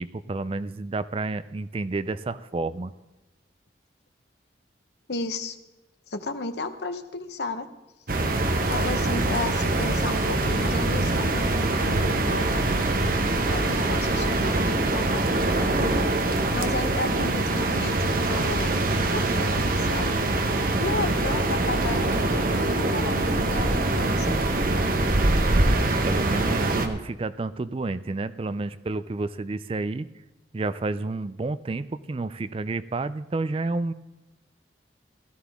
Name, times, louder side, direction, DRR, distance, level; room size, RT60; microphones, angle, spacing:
voice 1, 0.0-2.9 25.8-30.1 30.5-33.9, right 3 dB, 30° right, 14 dB, 0.4 m, -30 dB
voice 2, 5.1-5.6 6.1-7.7 8.1-8.2 8.6-12.6 13.5-15.5 15.8-16.1 16.5-20.4 20.8-24.5, left 2 dB, 65° left, 9 dB, 0.9 m, -33 dB
sound 1, 8.1-26.9, right 2 dB, 50° right, 1.0 m, -24 dB
16.5 x 13.0 x 3.6 m, 1.1 s
head